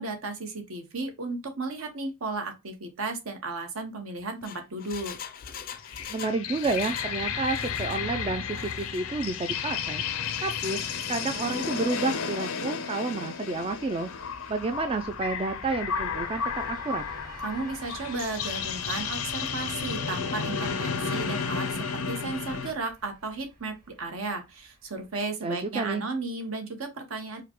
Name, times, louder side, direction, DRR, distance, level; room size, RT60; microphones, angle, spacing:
voice 1, 0.0-5.1 17.4-21.7 21.9-27.4, right 3 dB, 70° right, 1.0 m, -34 dB
Engine, 4.2-7.2 7.4-8.0 8.5-9.0 9.4-9.5, left 8 dB, 45° left, 0.4 m, -42 dB
sound 1, 5.8-22.7, left 6 dB, 85° left, 0.6 m, -33 dB
voice 2, 6.1-10.0 10.4-14.1 14.5-17.0 25.4-26.0, right 3 dB, 25° right, 0.3 m, -30 dB
sound 2, 13.2-25.2, right 2 dB, 40° right, 1.9 m, -49 dB
4.8 x 2.2 x 2.9 m
head